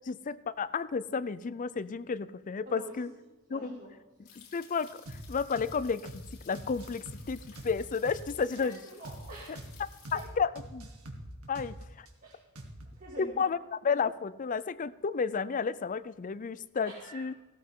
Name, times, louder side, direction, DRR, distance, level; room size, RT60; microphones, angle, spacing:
voice 1, 0.0-3.1 3.5-3.8 4.4-8.8 10.1-10.9 11.5-12.1 13.2-17.3, left 5 dB, 35° left, 16 dB, 0.4 m, -32 dB
voice 2, 2.7-3.0 3.5-3.9 8.4-9.7 10.1-10.2 12.2-12.4 12.8-13.7 16.8-17.3, right 1 dB, 40° right, -4 dB, 2.4 m, -46 dB
sound 1, 4.2-10.3, left 7 dB, 70° left, 3.6 m, -56 dB
sound 2, 5.1-5.2 5.6-5.7 6.1-6.2 6.5-8.2 8.6-8.7 9.0-9.2 9.5-9.7 10.0-10.2 10.6-12.1 12.6-13.0, right 1 dB, 90° right, 2.0 m, -44 dB
16.0 x 13.0 x 3.7 m, 1.1 s
head